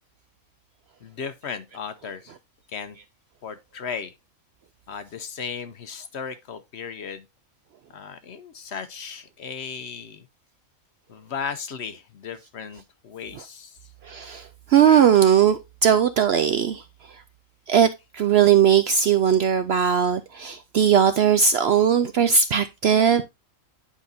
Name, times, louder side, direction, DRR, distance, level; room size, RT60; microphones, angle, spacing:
voice 1, 1.0-2.3 2.7-3.0 3.4-4.1 4.9-7.2 7.9-10.3 11.1-13.8, left 6 dB, 60° left, 0.8 m, -36 dB
voice 2, 14.1-16.8 17.7-23.2, right 8 dB, 65° right, 0.6 m, -19 dB
9.9 x 5.1 x 2.6 m
omnidirectional pair, 1.5 m